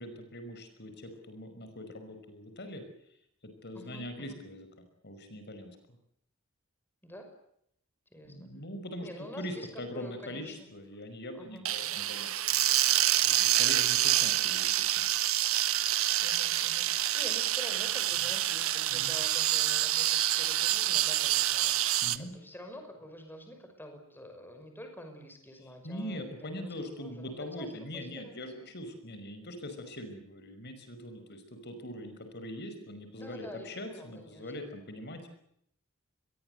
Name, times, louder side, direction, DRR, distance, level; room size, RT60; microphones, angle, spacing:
voice 1, 0.0-2.8 3.4-4.7 5.0-6.0 8.2-12.3 13.2-15.0 18.9-19.1 22.0-22.3 25.8-35.3, left 1 dB, 55° left, 8 dB, 5.5 m, -42 dB
voice 2, 3.7-4.4 7.0-7.3 8.1-8.5 9.0-10.7 11.3-12.0 16.2-16.9 17.1-21.7 22.1-27.3 27.6-28.6 33.2-34.5, equal, 10° left, 5 dB, 5.8 m, -47 dB
sound 1, 11.7-22.2, right 13 dB, 85° right, 1.4 m, -27 dB
27.0 x 22.0 x 8.0 m, 0.72 s
head